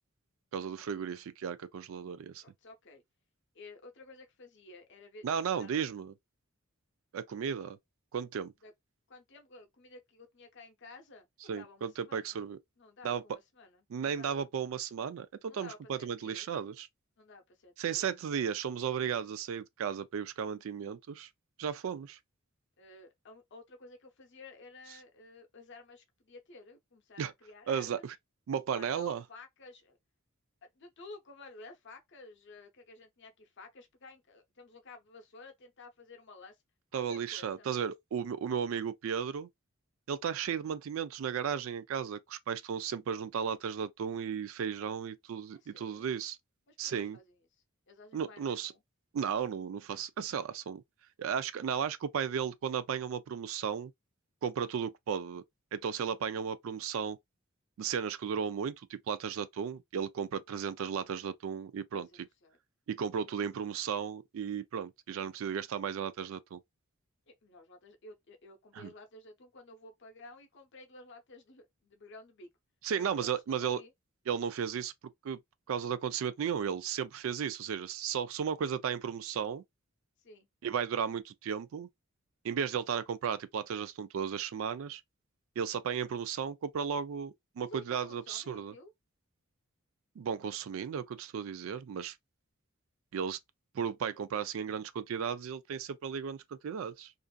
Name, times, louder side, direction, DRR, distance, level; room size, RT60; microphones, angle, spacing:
voice 1, 0.5-2.4 5.2-6.1 7.1-7.8 8.1-8.5 11.5-12.6 13.0-13.2 13.9-16.9 17.8-21.3 21.6-22.2 27.2-27.3 27.7-28.1 28.5-29.2 36.9-39.5 40.1-46.4 46.8-47.2 48.1-48.7 49.1-50.8 51.2-53.9 54.4-55.4 55.7-57.2 57.8-62.1 62.9-66.6 68.7-68.9 72.8-73.8 74.3-74.9 75.2-75.4 75.7-79.6 80.6-81.9 82.4-85.0 85.6-88.7 90.2-92.2 93.1-93.4 93.7-97.1, right 7 dB, 70° right, 0.3 m, -35 dB
voice 2, 2.4-3.0 3.5-5.2 5.6-5.8 8.6-8.7 9.1-12.4 12.8-14.5 15.5-16.6 17.2-18.1 22.8-28.0 28.7-30.0 30.7-36.6 36.9-37.7 45.6-46.0 46.7-47.4 47.9-48.8 60.5-60.6 61.9-62.6 67.3-72.5 73.0-73.9 80.2-80.5 87.6-88.9, left 3 dB, 60° left, 0.7 m, -53 dB
2.5 x 2.5 x 2.2 m
head